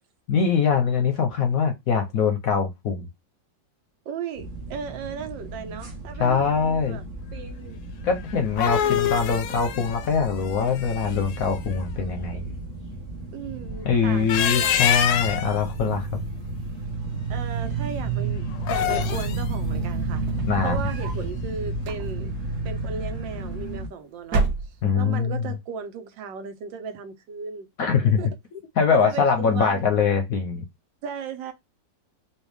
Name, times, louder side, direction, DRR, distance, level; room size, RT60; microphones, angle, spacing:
voice 1, 0.3-3.1 6.2-7.0 8.0-12.5 13.8-16.1 20.4-20.8 24.8-25.4 27.8-28.2 28.5-30.6, left 6 dB, 65° left, 0.9 m, -23 dB
voice 2, 4.1-7.0 7.3-7.8 8.8-9.1 13.3-15.0 17.3-20.2 20.6-22.3 22.6-27.7 28.0-28.3 28.9-29.9 31.0-31.5, right 6 dB, 85° right, 1.4 m, -36 dB
sound 1, 4.4-23.9, right 3 dB, 35° right, 1.0 m, -32 dB
sound 2, 8.3-11.4 14.1-15.6 18.5-19.4, left 10 dB, 80° left, 1.2 m, -26 dB
sound 3, 20.1-21.3 21.8-22.4 23.4-23.9 24.2-25.2, right 3 dB, 60° right, 1.4 m, -29 dB
4.4 x 2.3 x 3.3 m
omnidirectional pair, 2.0 m